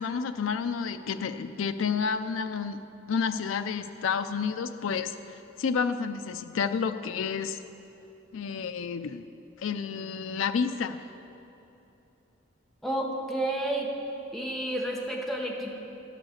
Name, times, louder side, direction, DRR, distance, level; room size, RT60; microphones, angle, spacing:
voice 1, 0.0-2.8 3.1-5.1 5.6-7.6 8.3-9.2 9.6-11.0, left 6 dB, 80° left, 9 dB, 0.4 m, -30 dB
voice 2, 12.8-13.9 14.3-15.8, right 1 dB, ahead, -1 dB, 0.9 m, -30 dB
10.5 x 6.0 x 7.1 m, 2.9 s
head